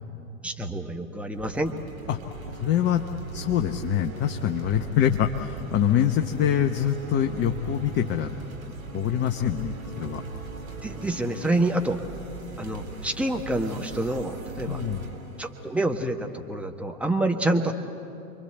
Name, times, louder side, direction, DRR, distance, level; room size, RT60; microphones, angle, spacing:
voice 1, 0.4-1.7 10.8-12.0 12.6-14.8 15.4-17.7, right 1 dB, 5° right, 2 dB, 1.5 m, -27 dB
sound 1, 1.3-16.8, right 4 dB, 75° right, 3.0 m, -39 dB
voice 2, 2.5-3.0 3.3-8.3 8.9-10.2 14.6-15.1, left 10 dB, 25° left, 6 dB, 0.9 m, -25 dB
29.0 x 23.0 x 8.1 m, 2.8 s
figure-of-eight pair, 90°, 41 cm